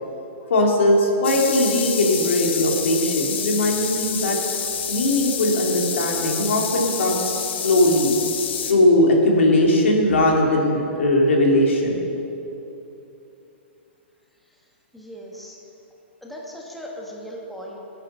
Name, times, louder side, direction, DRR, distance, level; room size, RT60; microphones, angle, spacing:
voice 1, 0.5-4.4 4.9-8.1 8.6-12.0, left 1 dB, 85° left, -1 dB, 2.9 m, -19 dB
sound 1, 1.2-8.7, left 7 dB, 65° left, 1.4 m, -28 dB
voice 2, 14.9-15.6 16.2-17.8, equal, ahead, -2 dB, 1.3 m, -37 dB
14.5 x 9.1 x 5.5 m, 3.0 s
hypercardioid pair, 155°, 7 cm